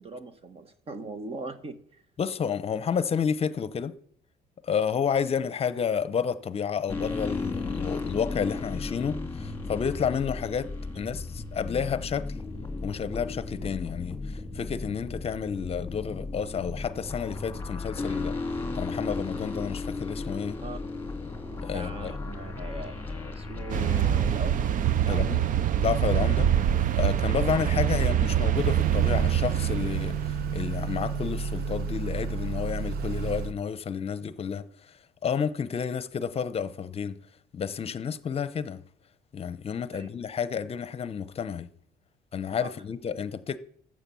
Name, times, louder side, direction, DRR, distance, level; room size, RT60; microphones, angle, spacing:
voice 1, 0.0-2.0 20.6-20.8 21.5-25.6 39.9-40.1 42.6-42.7, right 3 dB, 35° right, 1.3 m, -40 dB
voice 2, 2.2-3.9 4.6-12.3 12.8-18.4 18.7-20.6 21.6-22.1 25.1-25.4 25.8-26.5 26.9-34.7 35.2-37.2 37.5-38.8 39.3-41.7 42.3-43.6, left 7 dB, 35° left, 0.8 m, -30 dB
sound 1, 6.9-24.4, left 3 dB, 15° left, 2.1 m, -35 dB
sound 2, 23.7-30.9, right 10 dB, 50° right, 0.6 m, -25 dB
Motor vehicle (road) / Accelerating revving vroom, 28.5-33.5, right 6 dB, 70° right, 0.9 m, -32 dB
13.5 x 7.6 x 7.0 m
cardioid pair, 110°, 17 cm